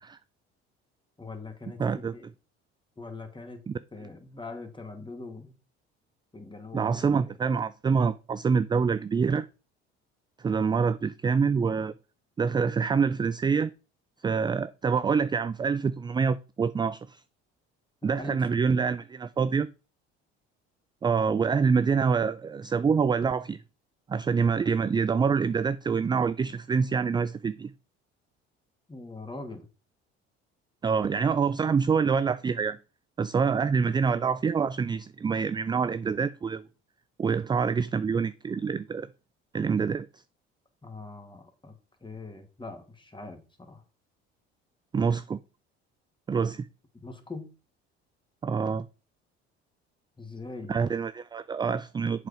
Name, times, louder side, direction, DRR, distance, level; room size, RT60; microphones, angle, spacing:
voice 1, 1.2-2.3 3.0-3.6 3.9-5.5 6.3-7.3 18.2-18.4 28.9-29.7 40.8-41.7 42.0-43.8 46.9-47.5 50.2-50.9, left 3 dB, 15° left, 2.2 m, -42 dB
voice 2, 1.8-2.1 3.7-3.8 6.7-9.5 10.4-11.9 12.4-13.7 14.2-17.2 18.0-19.7 21.0-23.6 24.1-27.7 30.8-32.8 33.2-36.6 37.2-39.1 39.5-40.1 44.9-45.4 46.3-46.7 48.4-48.9 50.7-52.3, right 5 dB, 15° right, 0.3 m, -26 dB
7.6 x 4.9 x 5.1 m
hypercardioid pair, 65°, 31 cm